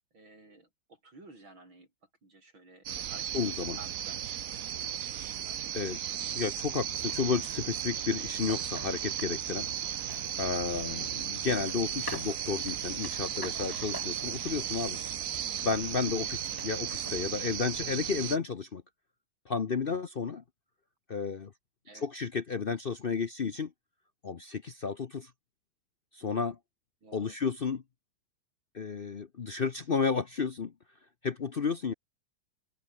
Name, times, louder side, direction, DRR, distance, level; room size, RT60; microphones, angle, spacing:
voice 1, 0.1-1.9 2.2-4.4 4.8-5.6 21.8-22.1 27.0-27.4, right 2 dB, 75° right, 9.0 m, -54 dB
sound 1, 2.9-18.4, right 10 dB, 55° right, 1.0 m, -35 dB
voice 2, 3.3-3.8 5.7-6.0 6.3-9.7 10.0-15.0 15.6-18.8 19.5-20.4 21.1-21.5 21.9-23.7 24.2-25.3 26.1-26.6 27.1-27.8 28.7-30.7 31.2-31.9, left 5 dB, 55° left, 0.6 m, -32 dB
sound 2, 6.9-17.3, left 1 dB, 10° left, 3.7 m, -47 dB
open air
omnidirectional pair, 2.2 m